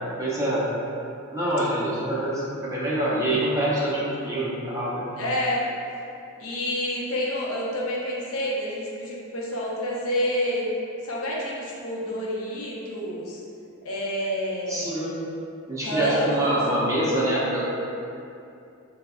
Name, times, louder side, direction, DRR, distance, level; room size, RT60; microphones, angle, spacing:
voice 1, 0.2-0.7 1.3-5.1 14.7-15.2 15.7-17.7, right 1 dB, 15° right, -7 dB, 0.5 m, -25 dB
voice 2, 5.2-5.7 6.4-10.7 11.0-13.4 13.8-14.9 15.8-16.6, equal, 65° left, -4 dB, 0.6 m, -28 dB
3.2 x 2.0 x 3.5 m, 2.6 s
head